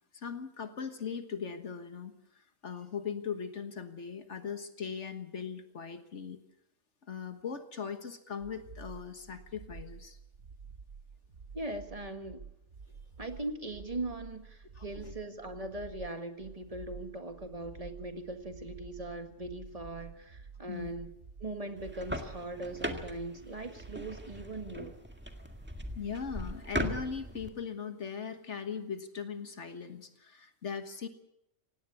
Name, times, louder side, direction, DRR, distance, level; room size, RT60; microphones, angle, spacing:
voice 1, 0.1-6.4 7.1-10.2 14.8-15.2 20.7-21.0 26.0-31.1, left 6 dB, 65° left, 8 dB, 1.7 m, -39 dB
sound 1, 8.4-24.2, right 5 dB, 60° right, 1.3 m, -50 dB
voice 2, 11.5-12.4 13.2-21.1 21.4-25.0, right 2 dB, 30° right, 7 dB, 1.8 m, -40 dB
sound 2, 21.8-27.5, equal, 10° right, 1.8 m, -39 dB
17.5 x 17.5 x 8.5 m, 0.79 s
omnidirectional pair, 1.3 m